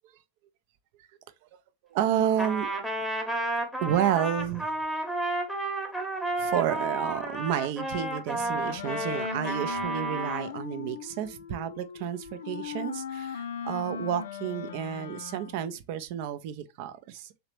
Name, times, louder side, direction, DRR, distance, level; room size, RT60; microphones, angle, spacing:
voice 1, 1.9-2.7 3.8-4.7 6.4-17.4, right 10 dB, 45° right, 0.4 m, -30 dB
Trumpet, 2.4-10.5, right 2 dB, 5° right, 0.9 m, -32 dB
Wind instrument woodwind instrument, 8.3-15.7, left 6 dB, 65° left, 0.4 m, -38 dB
3.2 x 2.9 x 3.0 m
figure-of-eight pair, 90°, 0 cm